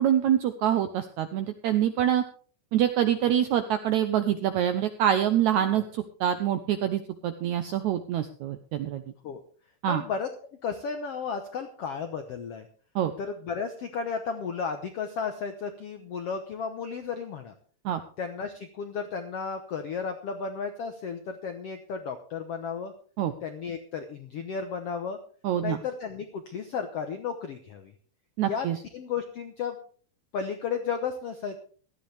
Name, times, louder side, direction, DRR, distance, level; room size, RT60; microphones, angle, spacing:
voice 1, 0.0-2.2 2.7-9.0 9.8-10.0 13.0-13.1 17.9-18.0 23.2-23.3 25.4-25.8 28.4-28.8, right 10 dB, 80° right, 9 dB, 1.7 m, -25 dB
voice 2, 9.8-10.3 10.6-12.7 13.2-17.5 18.2-22.9 23.4-25.2 25.6-27.9 28.4-28.7 28.9-29.8 30.3-31.6, left 6 dB, 90° left, 7 dB, 1.3 m, -33 dB
17.0 x 13.0 x 3.4 m, 0.44 s
omnidirectional pair, 4.3 m